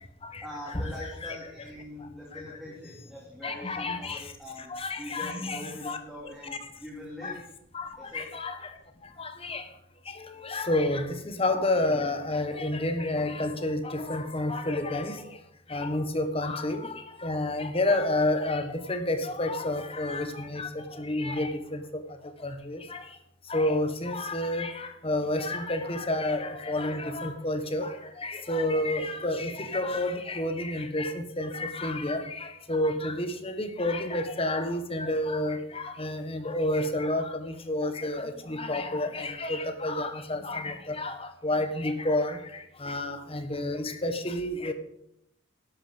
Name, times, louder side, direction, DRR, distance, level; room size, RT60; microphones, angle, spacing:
voice 1, 0.4-4.7 5.0-7.4 8.0-8.2, left 1 dB, ahead, -5 dB, 2.8 m, -42 dB
voice 2, 3.4-4.2 4.7-6.0 6.5-6.6 7.2-7.3 7.7-7.9 8.1-8.6 9.2-9.6 10.4-15.2 15.7-16.8 17.2-20.7 21.0-21.5 22.4-23.0 23.5-27.9 28.2-41.2 41.4-42.4 42.8-44.7, left 1 dB, 30° left, 8 dB, 1.4 m, -29 dB
12.0 x 11.0 x 5.2 m, 0.77 s
head